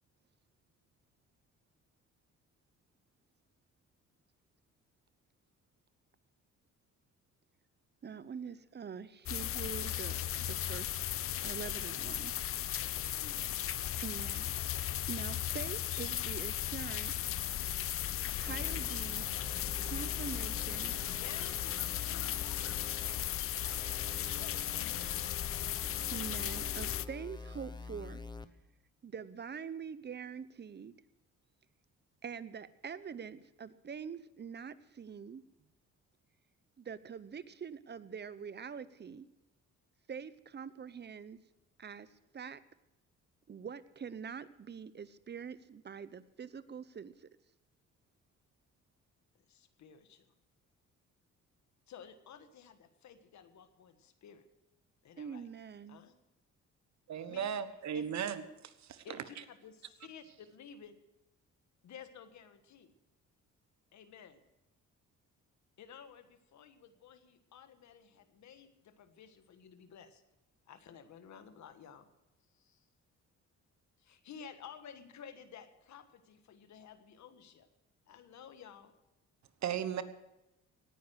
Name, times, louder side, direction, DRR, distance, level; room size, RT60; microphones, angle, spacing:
voice 1, 8.0-11.0 11.4-12.4 14.0-14.5 14.7-17.3 18.4-19.3 19.8-20.9 25.5-25.7 26.1-28.2 29.0-30.9 32.2-35.4 36.8-39.3 40.1-41.4 41.8-42.1 42.3-42.6 43.5-47.3 55.2-56.0, right 6 dB, 35° right, 16 dB, 0.8 m, -44 dB
sound 1, 9.3-27.1, left 12 dB, 50° left, 0.5 m, -36 dB
voice 2, 12.8-13.9 21.2-23.2 24.3-25.3 49.4-50.3 51.9-54.4 55.0-55.5 55.9-56.1 57.3-57.6 57.9-58.1 59.0-61.0 61.8-62.9 63.9-64.4 65.8-70.2 70.7-72.1 72.5-72.9 74.0-77.7 78.1-78.9, left 7 dB, 65° left, 9 dB, 1.6 m, -53 dB
sound 2, 18.5-28.5, left 3 dB, 15° left, 0.9 m, -47 dB
voice 3, 57.1-59.0 79.6-80.0, right 8 dB, 65° right, 12 dB, 1.2 m, -36 dB
18.0 x 9.6 x 6.4 m, 0.92 s
cardioid pair, 90°, 30 cm